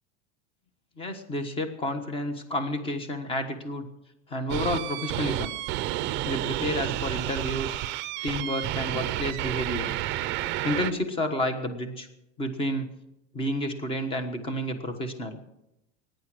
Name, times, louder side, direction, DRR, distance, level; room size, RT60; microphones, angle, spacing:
voice 1, 1.0-3.8 4.3-5.5 6.3-7.8 8.2-9.9 10.6-12.1 12.4-12.9 13.3-15.4, left 1 dB, 15° left, 8 dB, 1.3 m, -30 dB
sound 1, 4.5-10.9, right 14 dB, 35° right, 0.6 m, -30 dB
21.5 x 10.5 x 6.2 m, 0.87 s
cardioid pair, 180°, 34 cm